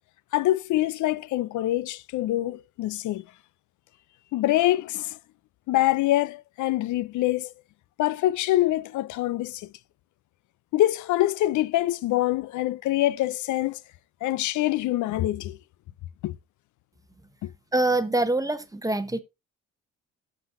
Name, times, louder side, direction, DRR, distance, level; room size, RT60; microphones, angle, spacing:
voice 1, 0.3-3.2 4.3-5.2 5.7-7.5 8.0-9.7 10.7-13.8 14.2-15.6 16.2-16.4 17.4-17.5, left 15 dB, 75° left, 0.5 m, -25 dB
voice 2, 17.7-19.2, right 2 dB, 10° right, 0.9 m, -24 dB
14.5 x 6.0 x 2.6 m
cardioid pair, 90°, 30 cm